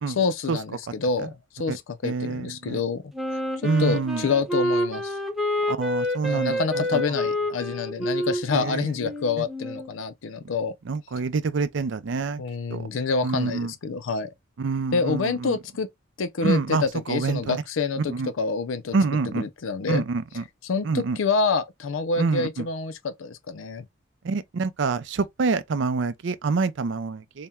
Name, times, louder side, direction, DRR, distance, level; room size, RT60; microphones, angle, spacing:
voice 1, 0.1-3.0 3.3-3.4 3.8-5.2 6.2-10.7 12.4-14.3 14.9-15.9 16.2-19.0 19.3-20.0 20.6-23.8, left 4 dB, 80° left, 0.5 m, -27 dB
voice 2, 2.0-2.8 3.6-4.3 5.7-7.0 8.5-8.9 9.4-9.5 10.8-12.4 12.7-12.9 13.2-13.7 14.6-15.6 16.4-17.6 18.1-18.3 18.9-19.5 19.9-20.4 20.8-21.2 22.2-22.7 24.2-27.5, right 4 dB, 65° right, 0.5 m, -26 dB
Wind instrument woodwind instrument, 3.1-9.9, left 1 dB, ahead, 0.7 m, -28 dB
4.2 x 2.1 x 3.5 m
head